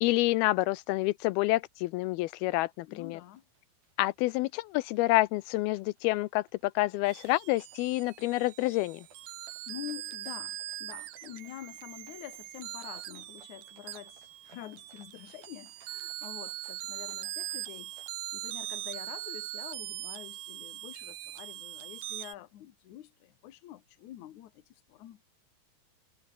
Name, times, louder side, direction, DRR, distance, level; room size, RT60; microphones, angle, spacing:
voice 1, 0.0-3.2 4.0-9.0, left 19 dB, 85° left, 2.5 m, -28 dB
sound 1, 2.7-18.1, right 4 dB, 70° right, 8.3 m, -64 dB
voice 2, 2.9-3.4 9.7-17.9 18.3-25.2, left 13 dB, 60° left, 2.4 m, -47 dB
sound 2, 7.1-22.3, right 15 dB, 85° right, 3.1 m, -41 dB
omnidirectional pair, 4.4 m